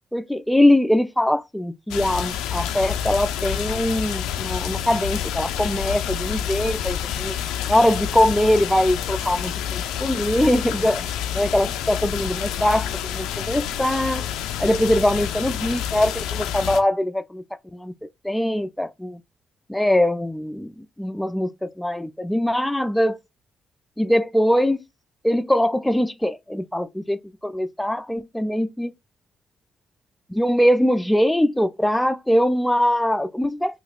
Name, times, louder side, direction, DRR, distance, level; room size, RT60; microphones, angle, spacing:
voice 1, 0.1-7.3 7.7-11.0 11.3-14.2 14.6-17.4 17.7-17.9 18.2-19.2 19.7-23.2 24.0-24.8 25.2-28.9 30.3-33.8, left 1 dB, 5° left, 0.4 m, -22 dB
sound 1, 1.9-16.8, left 10 dB, 75° left, 0.4 m, -28 dB
3.9 x 2.4 x 2.4 m
hypercardioid pair, 45°, 0 cm